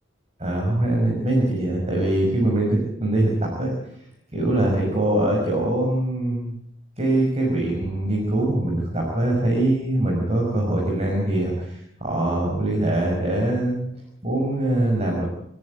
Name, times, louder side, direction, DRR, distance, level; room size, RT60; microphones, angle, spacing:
voice 1, 0.4-3.7 4.3-6.5 7.0-13.9 14.2-15.3, right 1 dB, 30° right, 0 dB, 5.6 m, -23 dB
29.0 x 10.5 x 9.5 m, 0.76 s
head